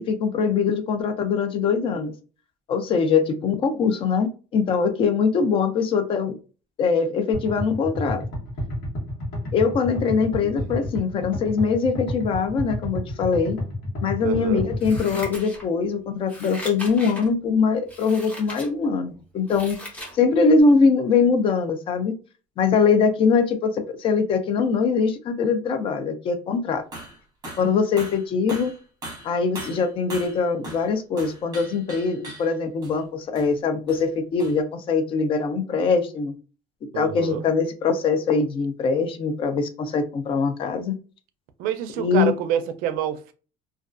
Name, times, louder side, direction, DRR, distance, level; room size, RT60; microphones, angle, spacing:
voice 1, 0.0-2.1 2.7-6.4 6.8-8.2 9.5-13.6 14.0-19.8 20.1-22.1 22.6-26.8 27.6-28.7 29.2-36.3 36.9-41.0 42.0-42.3, left 5 dB, 35° left, 0.4 m, -22 dB
sound 1, 7.3-15.3, left 1 dB, 70° left, 1.1 m, -30 dB
voice 2, 10.4-10.8 14.2-14.7 36.9-37.5 41.6-43.3, right 9 dB, 75° right, 0.4 m, -27 dB
Scissors, 14.8-15.9 16.3-17.3 17.9-18.7 19.1-20.2 20.6-20.7, left 1 dB, 10° left, 0.7 m, -38 dB
sound 2, 26.9-27.2 27.4-27.7 28.0-30.9 31.2-32.6 32.8-33.0 33.4-33.5 33.9-34.0 34.4-34.6, right 1 dB, 25° right, 0.9 m, -39 dB
2.2 x 2.2 x 2.4 m
cardioid pair, 150°, 15 cm